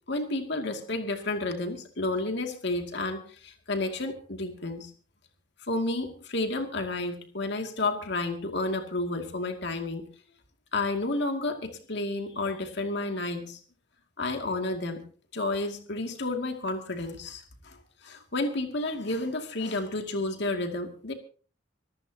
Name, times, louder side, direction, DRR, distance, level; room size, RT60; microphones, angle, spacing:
voice 1, 0.1-4.9 5.7-10.1 10.7-13.6 14.2-15.0 15.3-21.1, left 2 dB, 60° left, 4 dB, 2.4 m, -31 dB
26.0 x 14.5 x 2.9 m, 0.39 s
head